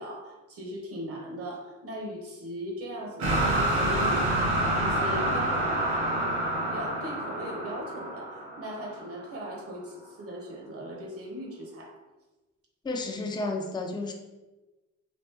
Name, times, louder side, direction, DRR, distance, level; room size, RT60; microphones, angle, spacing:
voice 1, 0.0-11.9, equal, 50° right, 1 dB, 0.9 m, -39 dB
sound 1, 3.2-9.2, right 1 dB, 70° right, 1.2 m, -27 dB
voice 2, 12.8-14.1, left 2 dB, 15° left, 3 dB, 0.4 m, -31 dB
3.1 x 2.5 x 3.2 m, 1.1 s
cardioid pair, 90°, 30 cm